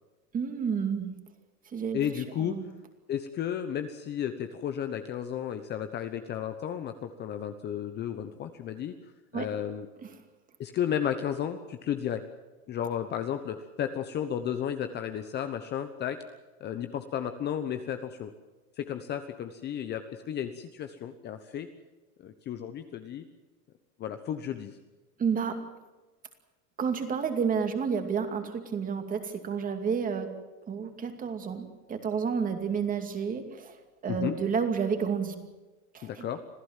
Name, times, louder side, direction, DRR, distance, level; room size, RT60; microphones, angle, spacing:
voice 1, 0.3-1.1 1.7-2.0 2.4-2.7 9.3-9.5 10.0-10.1 25.2-25.6 26.8-30.3 30.7-33.8 34.0-35.3 35.9-36.3, right 6 dB, 20° right, 6 dB, 2.5 m, -30 dB
voice 2, 1.9-2.6 3.1-8.9 9.3-9.9 10.6-12.2 12.7-16.2 16.6-18.3 18.8-21.7 22.2-23.2 24.0-24.7 34.1-34.3 36.0-36.4, left 9 dB, 25° left, 8 dB, 1.1 m, -33 dB
26.5 x 16.0 x 7.5 m, 1.2 s
supercardioid pair, 150°, 44 cm